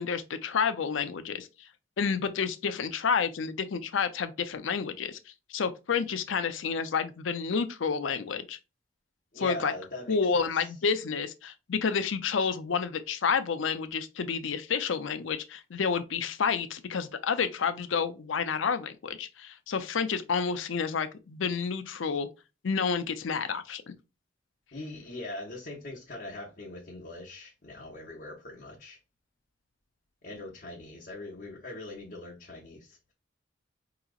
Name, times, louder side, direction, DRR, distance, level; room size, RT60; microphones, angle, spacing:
voice 1, 0.0-1.5 2.0-5.2 5.5-8.6 9.4-9.7 10.1-22.3 22.6-23.8, left 6 dB, 85° left, 0.5 m, -29 dB
voice 2, 9.3-10.7 24.7-29.0 30.2-33.0, left 2 dB, 45° left, 0.8 m, -41 dB
4.8 x 2.9 x 2.4 m
head